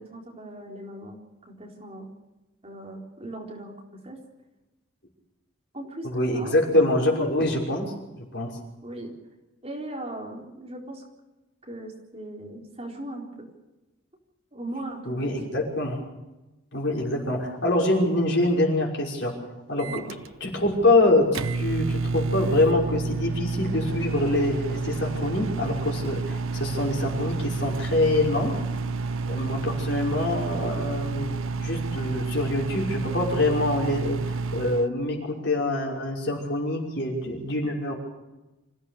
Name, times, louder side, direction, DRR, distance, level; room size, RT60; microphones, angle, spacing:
voice 1, 0.0-2.1 2.6-4.2 5.7-6.5 8.8-9.1 9.6-11.0 11.7-13.5 14.5-15.7 19.8-20.1, right 1 dB, 30° right, -1 dB, 4.1 m, -39 dB
voice 2, 6.0-8.5 15.1-16.0 16.7-19.3 19.7-20.0 20.4-28.5 29.3-38.0, left 2 dB, 55° left, -1 dB, 5.8 m, -25 dB
Microwave oven, 19.8-34.9, right 4 dB, 85° right, 0.8 m, -30 dB
26.0 x 16.0 x 6.7 m, 1.0 s
head